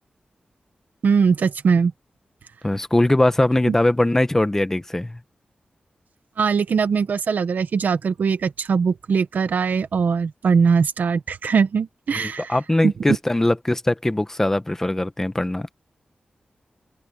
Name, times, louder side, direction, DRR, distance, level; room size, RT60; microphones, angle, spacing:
voice 1, 1.0-1.9 3.6-3.7 6.4-12.6 12.8-12.9, right 5 dB, 80° right, 1.3 m, -21 dB
voice 2, 2.6-5.2 12.1-15.7, left 1 dB, 15° left, 1.2 m, -21 dB
open air
wide cardioid pair, 135°, 3 cm